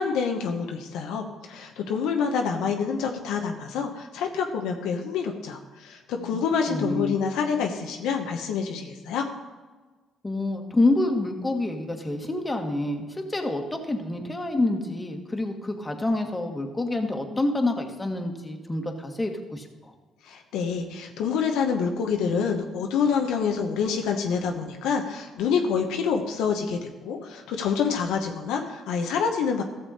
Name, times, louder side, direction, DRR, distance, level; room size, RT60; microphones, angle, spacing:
voice 1, 0.0-9.2 20.3-29.6, left 6 dB, 80° left, 3 dB, 0.9 m, -27 dB
voice 2, 6.7-7.1 10.2-19.9, left 2 dB, 20° left, 3 dB, 1.7 m, -27 dB
14.0 x 6.9 x 4.2 m, 1.3 s
supercardioid pair, 60°, 0 cm